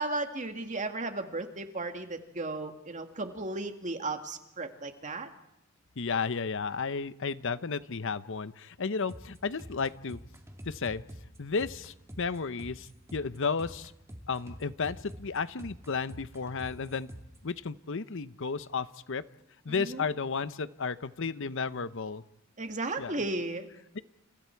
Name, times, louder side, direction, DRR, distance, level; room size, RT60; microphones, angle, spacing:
voice 1, 0.0-5.3 19.7-20.0 22.6-23.7, right 2 dB, 35° right, 6 dB, 2.1 m, -35 dB
voice 2, 6.0-10.2 10.6-11.0 11.4-13.9 14.3-17.1 17.4-19.2 19.6-22.2 23.0-23.1 23.9-24.0, left 5 dB, 65° left, 14 dB, 0.8 m, -33 dB
sound 1, 9.0-17.4, equal, 15° right, 2.6 m, -47 dB
29.5 x 29.0 x 4.6 m, 0.85 s
head